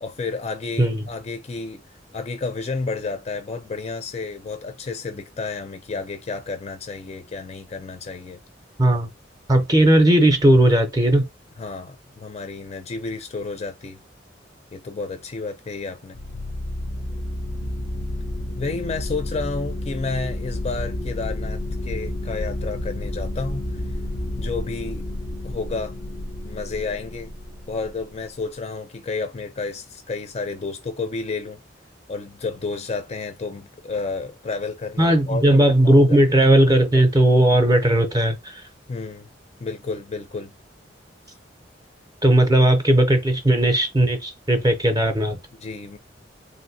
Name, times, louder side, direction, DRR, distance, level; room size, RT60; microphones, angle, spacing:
voice 1, 0.0-1.8 2.1-8.4 9.5-9.7 11.6-14.0 14.7-16.2 18.6-23.8 24.4-25.1 25.4-25.9 26.4-27.3 27.7-31.6 32.1-36.2 38.9-39.3 39.6-40.5 45.5-46.0, left 4 dB, 35° left, 0.4 m, -31 dB
voice 2, 8.8-9.1 9.5-11.3 35.0-38.6 42.2-45.4, right 1 dB, 20° right, 0.5 m, -17 dB
sound 1, 16.1-28.4, left 1 dB, 85° left, 0.6 m, -31 dB
3.3 x 2.6 x 2.7 m
head